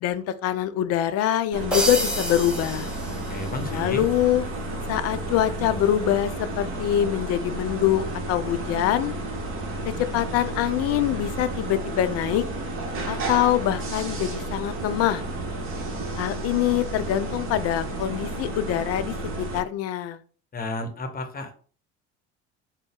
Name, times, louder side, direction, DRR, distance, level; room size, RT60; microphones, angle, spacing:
voice 1, 0.0-2.9 3.7-4.4 4.9-9.2 9.9-12.4 13.1-15.2 16.2-20.2, left 12 dB, 45° left, 12 dB, 0.5 m, -24 dB
sound 1, 1.5-19.6, right 2 dB, 40° right, 1.1 m, -32 dB
sound 2, 1.7-3.8, right 1 dB, 5° right, 0.9 m, -29 dB
voice 2, 3.2-4.0 20.5-21.5, left 2 dB, 25° left, 6 dB, 0.8 m, -32 dB
3.8 x 2.1 x 3.6 m, 0.42 s
hypercardioid pair, 70°, 34 cm